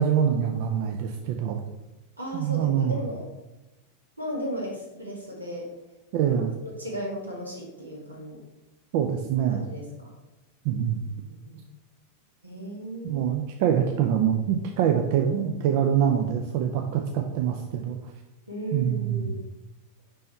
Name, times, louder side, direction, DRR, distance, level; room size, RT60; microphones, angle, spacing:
voice 1, 0.0-1.6 2.3-3.0 6.1-6.5 8.9-9.6 10.6-11.0 13.0-18.1 18.7-19.3, right 8 dB, 50° right, 4 dB, 0.5 m, -25 dB
voice 2, 2.2-3.3 4.2-5.7 6.2-8.4 9.5-10.1 11.2-11.7 12.4-13.4 18.5-19.4, equal, 85° right, -2 dB, 1.7 m, -35 dB
5.5 x 5.3 x 4.3 m, 1.0 s
figure-of-eight pair, 90°, 0 cm